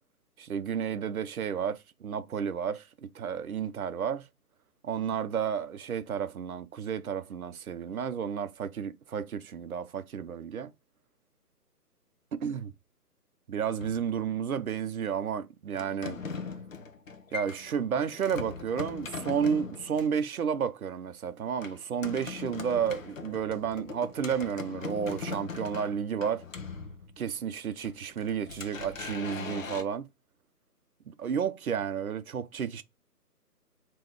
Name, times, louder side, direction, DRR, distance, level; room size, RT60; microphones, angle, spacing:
voice 1, 0.4-2.9 3.1-4.3 4.8-10.7 12.3-12.7 13.5-16.2 17.3-26.4 27.2-30.1 31.1-32.8, right 7 dB, 60° right, 0.7 m, -32 dB
sound 1, 13.8-14.6 15.7-20.2 21.6-27.4 27.8-29.8, left 5 dB, 55° left, 0.9 m, -40 dB
3.6 x 3.0 x 4.5 m
figure-of-eight pair, 145°, 48 cm